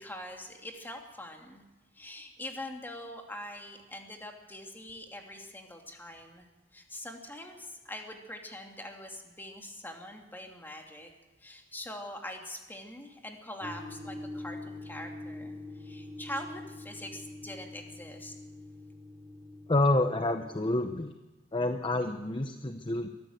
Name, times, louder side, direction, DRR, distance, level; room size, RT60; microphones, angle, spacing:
voice 1, 0.0-1.6 1.9-11.1 11.4-18.3, left 1 dB, 10° left, 2 dB, 2.7 m, -43 dB
sound 1, 13.6-20.8, left 2 dB, 20° right, 7.8 m, -44 dB
voice 2, 19.7-21.1 21.5-23.1, left 2 dB, 25° left, 7 dB, 0.8 m, -28 dB
23.5 x 14.0 x 8.0 m, 1.2 s
head